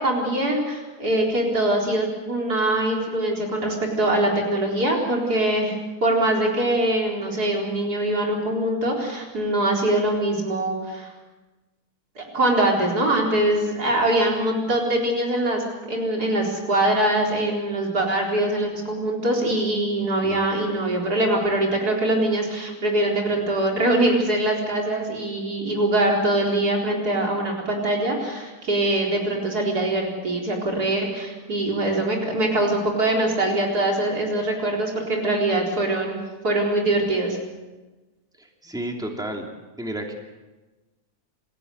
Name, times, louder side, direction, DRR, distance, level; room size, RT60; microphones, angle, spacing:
voice 1, 0.0-11.1 12.2-36.2 36.4-37.4, right 1 dB, 85° right, -1 dB, 4.7 m, -23 dB
voice 2, 38.4-39.5 39.8-40.1, right 1 dB, ahead, 1 dB, 2.9 m, -32 dB
28.5 x 15.5 x 8.2 m, 1.2 s
omnidirectional pair, 1.6 m